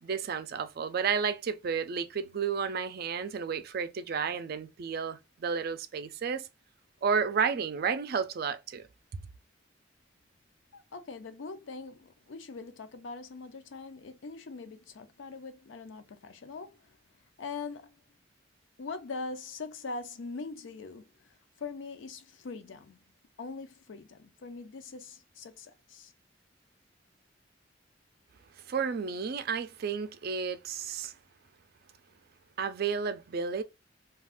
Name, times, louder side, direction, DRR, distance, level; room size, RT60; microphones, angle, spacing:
voice 1, 0.0-6.5 7.0-8.8 28.7-31.1 32.6-33.6, right 6 dB, 55° right, 0.4 m, -32 dB
voice 2, 10.7-17.0 17.4-18.0 18.8-23.0 23.4-26.1, left 4 dB, 80° left, 0.5 m, -42 dB
2.4 x 2.3 x 3.4 m
head